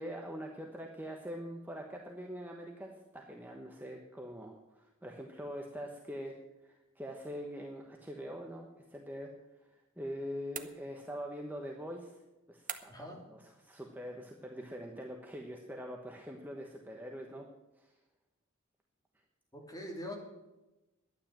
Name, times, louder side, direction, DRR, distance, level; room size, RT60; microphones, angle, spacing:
voice 1, 0.0-6.3 6.6-9.3 9.6-9.7 10.0-12.2 12.5-17.4 17.8-17.9, equal, 10° right, 1 dB, 1.1 m, -43 dB
sound 1, 10.5-11.3 12.7-13.2, right 9 dB, 40° right, 0.9 m, -44 dB
voice 2, 19.5-20.2, equal, 15° left, -1 dB, 3.4 m, -43 dB
12.0 x 9.7 x 7.3 m, 1.0 s
head